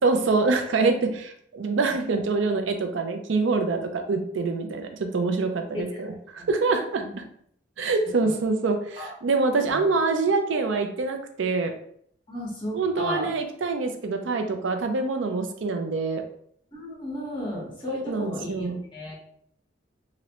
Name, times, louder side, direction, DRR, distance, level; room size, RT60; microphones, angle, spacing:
voice 1, 0.0-7.0 7.8-11.7 12.7-16.2 17.9-18.8, right 3 dB, 85° right, 6 dB, 0.4 m, -25 dB
voice 2, 5.7-6.5 7.0-7.1 8.0-8.3 9.0-9.1 9.7-9.8 12.3-13.3 16.7-18.7 18.9-19.1, left 1 dB, 25° left, -4 dB, 1.2 m, -34 dB
3.0 x 2.6 x 2.9 m, 0.66 s
head